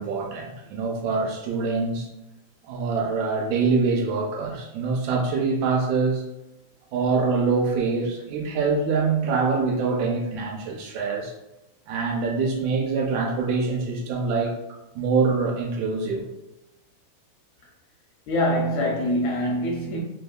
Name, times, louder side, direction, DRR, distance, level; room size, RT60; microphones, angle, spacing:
voice 1, 0.0-2.1 2.6-6.2 6.9-11.3 11.9-14.6 15.0-16.3, right 4 dB, 80° right, 0 dB, 1.9 m, -24 dB
voice 2, 18.3-20.0, equal, 80° left, -2 dB, 1.7 m, -24 dB
4.7 x 2.6 x 2.2 m, 0.94 s
omnidirectional pair, 3.5 m